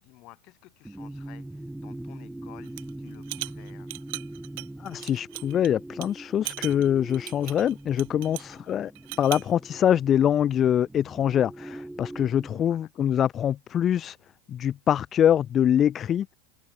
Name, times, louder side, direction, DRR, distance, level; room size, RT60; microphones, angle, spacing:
voice 1, 0.0-3.9 8.5-8.8 12.7-13.1, left 21 dB, 50° left, 5.6 m, -53 dB
sound 1, 0.8-12.6, right 1 dB, 5° right, 3.6 m, -42 dB
sound 2, 2.7-2.9 3.2-5.7 6.0-6.1 6.5-8.5 9.0-9.5, right 26 dB, 65° right, 1.6 m, -38 dB
voice 2, 4.8-8.9 9.2-14.2 14.5-16.3, left 10 dB, 35° left, 0.4 m, -24 dB
hypercardioid pair, 105°, 0 cm